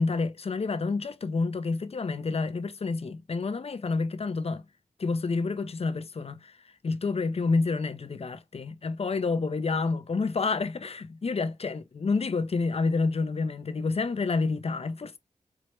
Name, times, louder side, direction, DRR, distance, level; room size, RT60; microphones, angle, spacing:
voice 1, 0.0-4.6 5.0-6.6 6.8-15.2, left 4 dB, 50° left, 0.6 m, -29 dB
4.5 x 2.1 x 3.0 m
cardioid pair, 45°, 14 cm